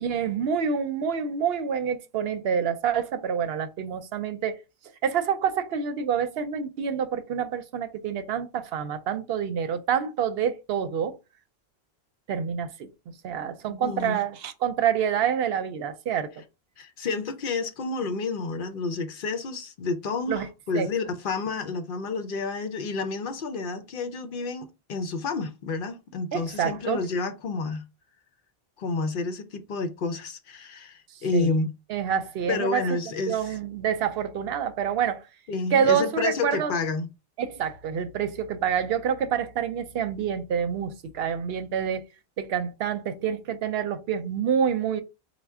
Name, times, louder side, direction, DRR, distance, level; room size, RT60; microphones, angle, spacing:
voice 1, 0.0-4.5 5.0-11.2 12.3-12.9 13.2-16.3 20.3-20.5 20.7-20.9 26.3-27.0 31.3-31.5 31.9-33.0 33.3-35.2 35.7-36.7 37.4-42.0 42.4-45.0, right 8 dB, 75° right, 0.8 m, -27 dB
voice 2, 13.7-14.2 16.8-27.8 28.8-31.7 32.5-33.6 35.5-37.1, left 4 dB, 60° left, 0.7 m, -30 dB
4.3 x 2.1 x 3.5 m
omnidirectional pair, 1.0 m